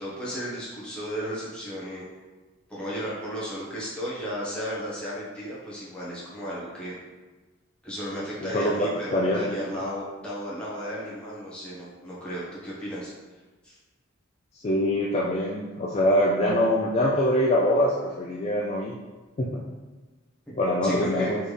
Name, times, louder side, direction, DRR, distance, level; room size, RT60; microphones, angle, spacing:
voice 1, 0.0-2.0 2.7-6.9 7.8-13.1 13.6-13.8 20.8-21.3, equal, 5° left, -8 dB, 1.1 m, -34 dB
voice 2, 8.4-9.6 14.6-18.9 19.4-19.6 20.6-21.4, left 1 dB, 30° left, -3 dB, 0.3 m, -24 dB
4.3 x 3.4 x 3.3 m, 1.3 s
head